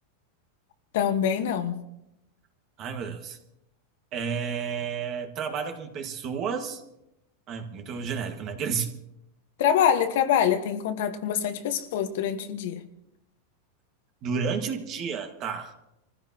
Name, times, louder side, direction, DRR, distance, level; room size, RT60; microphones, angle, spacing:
voice 1, 0.9-1.8 9.6-12.8, left 8 dB, 70° left, 1.4 m, -25 dB
voice 2, 2.8-3.4 4.1-6.8 7.5-8.9 14.2-15.7, right 6 dB, 35° right, 1.8 m, -31 dB
26.0 x 15.0 x 3.0 m
supercardioid pair, 150°, 0 cm